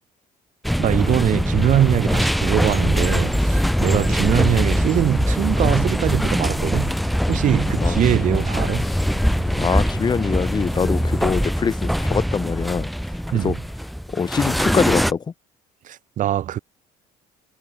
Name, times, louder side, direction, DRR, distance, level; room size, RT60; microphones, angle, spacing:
sound 1, 0.6-15.1, equal, ahead, 0.4 m, -22 dB
voice 1, 0.8-6.9 7.3-8.9 13.3-13.5 15.8-16.6, right 11 dB, 45° right, 0.7 m, -22 dB
sound 2, 3.2-11.4, left 26 dB, 90° left, 2.2 m, -41 dB
voice 2, 9.6-12.9 13.4-13.6 14.1-15.2, left 6 dB, 25° left, 0.8 m, -23 dB
cardioid pair, 115°, 18 cm